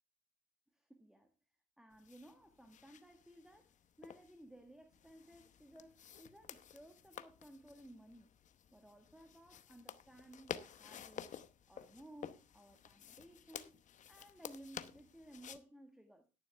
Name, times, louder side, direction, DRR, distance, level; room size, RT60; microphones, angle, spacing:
voice 1, 0.7-1.3 1.8-8.3 8.7-11.3 11.7-13.8 14.1-16.3, right 1 dB, 5° right, 1.5 m, -58 dB
sound 1, 1.9-15.6, left 9 dB, 45° left, 1.0 m, -52 dB
12.0 x 11.0 x 3.3 m
cardioid pair, 110°, 17 cm